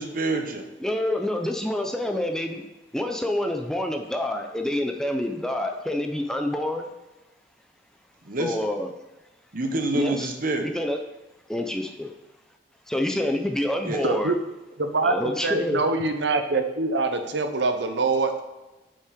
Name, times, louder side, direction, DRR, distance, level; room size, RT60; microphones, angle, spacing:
voice 1, 0.0-0.7 8.2-8.6 9.5-10.7 13.8-14.0, right 2 dB, 50° right, 5 dB, 1.1 m, -27 dB
voice 2, 0.8-2.6 2.9-6.9 8.4-8.9 9.9-10.3 10.6-11.0 11.5-12.1 12.9-14.3 15.0-15.8, left 1 dB, 5° left, 3 dB, 0.6 m, -27 dB
voice 3, 14.0-14.4 14.8-18.3, right 3 dB, 75° right, 7 dB, 0.8 m, -24 dB
8.3 x 5.6 x 5.1 m, 1.1 s
head